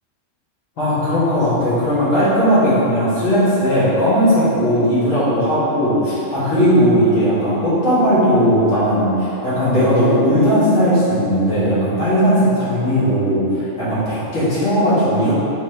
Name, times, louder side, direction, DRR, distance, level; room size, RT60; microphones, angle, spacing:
voice 1, 0.8-13.4 13.8-15.4, equal, 90° left, -12 dB, 2.1 m, -17 dB
4.0 x 4.0 x 3.2 m, 2.9 s
omnidirectional pair, 1.3 m